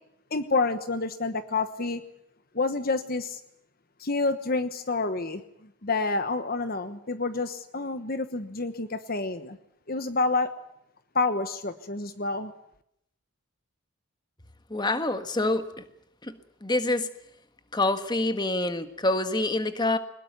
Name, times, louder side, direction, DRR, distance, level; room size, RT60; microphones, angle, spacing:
voice 1, 0.3-2.0 2.5-3.4 4.0-5.4 5.8-9.6 9.9-10.5 11.1-12.5, left 3 dB, 40° left, 10 dB, 1.2 m, -28 dB
voice 2, 14.7-15.8 16.2-16.3 16.6-17.1 17.7-20.0, left 2 dB, 20° left, 10 dB, 1.5 m, -26 dB
22.0 x 20.5 x 9.2 m, 0.76 s
head